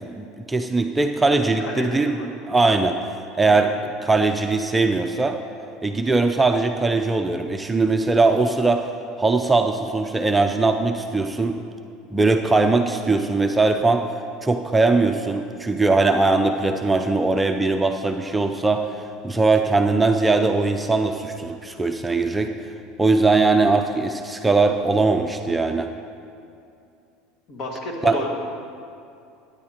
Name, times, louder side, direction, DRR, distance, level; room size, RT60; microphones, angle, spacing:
voice 1, 0.0-2.2 2.5-3.0 3.3-3.7 4.0-5.4 5.8-8.9 9.2-11.6 12.1-14.0 14.4-22.5 23.0-25.9 28.0-28.2, right 3 dB, 10° right, 5 dB, 0.4 m, -20 dB
voice 2, 1.6-2.3 3.5-3.7 27.5-28.3, left 2 dB, 50° left, 0 dB, 1.8 m, -31 dB
13.5 x 10.0 x 2.9 m, 2.5 s
supercardioid pair, 105°, 0 cm